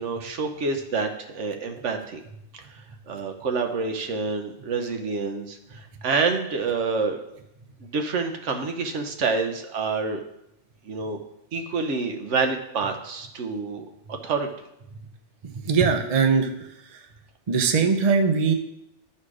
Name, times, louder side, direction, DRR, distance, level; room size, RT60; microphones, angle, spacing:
voice 1, 0.0-2.2 3.1-7.2 7.8-10.2 10.8-11.2 11.5-14.5, right 4 dB, 85° right, 5 dB, 1.2 m, -27 dB
voice 2, 15.4-17.1 17.5-18.5, right 5 dB, 35° right, 6 dB, 0.7 m, -22 dB
11.5 x 4.3 x 4.9 m, 0.82 s
omnidirectional pair, 1.2 m